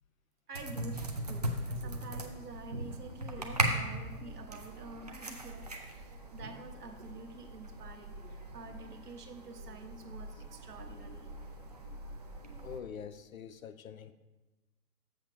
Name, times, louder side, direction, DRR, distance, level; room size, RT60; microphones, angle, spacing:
sound 1, 0.5-12.8, right 1 dB, 30° right, 0.4 m, -39 dB
voice 1, 0.5-11.3, right 3 dB, 70° right, 5 dB, 1.2 m, -48 dB
voice 2, 12.6-14.1, left 7 dB, 60° left, 11 dB, 0.6 m, -45 dB
7.5 x 6.0 x 4.5 m, 1.2 s
figure-of-eight pair, 125°, 48 cm